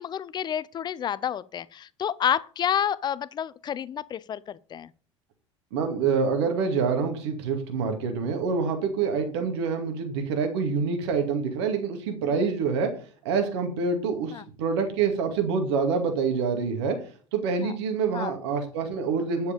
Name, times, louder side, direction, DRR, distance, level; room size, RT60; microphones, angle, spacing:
voice 1, 0.0-4.9 12.3-12.4 14.3-14.4 17.6-17.7 18.1-18.4, left 9 dB, 30° left, 0.6 m, -29 dB
voice 2, 5.7-12.9 13.2-17.0 17.3-19.5, right 5 dB, 60° right, 2.3 m, -26 dB
10.0 x 6.8 x 5.2 m
figure-of-eight pair, 70°, 16 cm